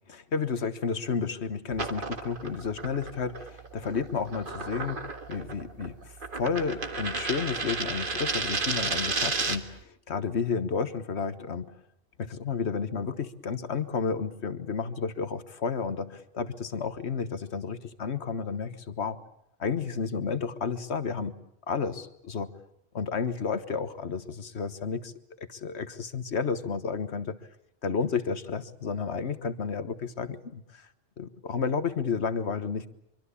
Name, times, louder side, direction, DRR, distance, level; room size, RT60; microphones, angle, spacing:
voice 1, 0.1-5.0 5.3-9.8 10.1-11.7 12.2-19.2 19.6-21.4 21.7-22.5 22.9-25.1 25.4-27.4 27.8-30.9 31.2-32.9, left 5 dB, 70° left, 12 dB, 1.6 m, -31 dB
sound 1, 1.7-9.8, right 3 dB, 45° right, 1.8 m, -33 dB
25.0 x 24.5 x 8.4 m, 0.73 s
omnidirectional pair, 1.2 m